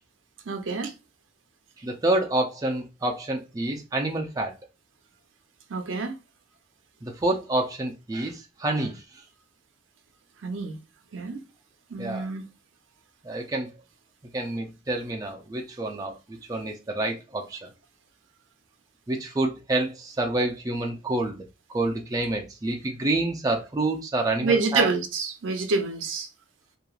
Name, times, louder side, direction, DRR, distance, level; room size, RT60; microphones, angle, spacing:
voice 1, 0.5-0.9 5.7-6.1 10.4-10.8 11.1-11.4 11.9-12.4 24.4-26.3, right 4 dB, 90° right, 0.6 m, -27 dB
voice 2, 1.8-4.5 7.0-9.0 12.0-12.3 13.2-13.7 14.3-17.7 19.1-21.4 21.7-24.9, right 2 dB, 20° right, 0.4 m, -28 dB
2.9 x 2.4 x 2.3 m
head